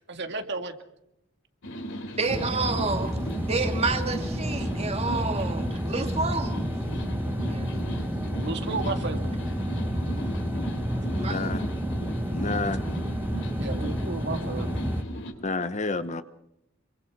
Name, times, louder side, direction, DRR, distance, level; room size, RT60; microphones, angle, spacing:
voice 1, 0.1-0.7 5.1-5.4 8.4-9.3 13.6-14.7, right 3 dB, 55° right, 2.0 m, -33 dB
sound 1, 1.6-15.3, right 1 dB, 65° left, 3.1 m, -37 dB
voice 2, 2.1-6.7 7.4-7.7 11.2-11.5, right 3 dB, 30° right, 2.2 m, -30 dB
sound 2, 2.3-15.0, equal, 10° right, 1.5 m, -30 dB
voice 3, 11.1-11.7 12.3-12.9 15.3-16.2, left 3 dB, 35° left, 1.0 m, -30 dB
27.0 x 24.0 x 4.8 m
head